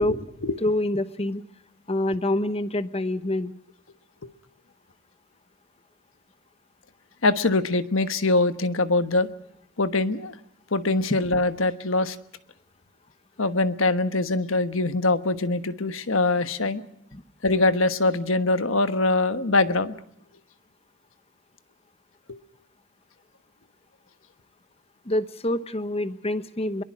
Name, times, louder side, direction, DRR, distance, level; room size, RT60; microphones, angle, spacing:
voice 1, 0.0-0.6 7.2-9.3 9.8-10.3 10.7-12.2 13.4-16.8 17.4-20.0 22.3-22.4, left 2 dB, 75° left, 11 dB, 1.3 m, -23 dB
voice 2, 0.6-1.4 1.9-3.5 17.1-17.2 25.0-26.8, left 1 dB, 30° left, 12 dB, 1.1 m, -26 dB
24.0 x 22.5 x 6.2 m, 0.76 s
head